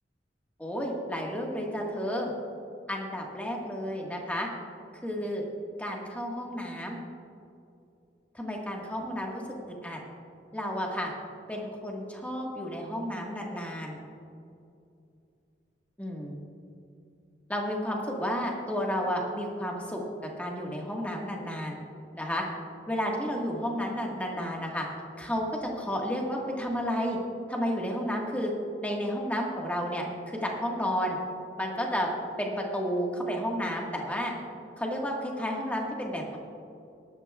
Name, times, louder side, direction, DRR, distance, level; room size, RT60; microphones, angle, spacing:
voice 1, 0.6-2.3 2.9-4.5 5.0-5.4 5.8-7.0 8.3-9.4 9.7-10.0 10.5-11.1 11.5-14.0 16.0-16.4 17.5-21.8 22.1-22.4 22.9-24.8 25.2-27.2 27.5-28.5 28.8-31.2 31.6-32.1 32.4-34.3 34.8-36.4, equal, 10° left, -1 dB, 1.5 m, -32 dB
18.0 x 12.0 x 2.4 m, 2.6 s
head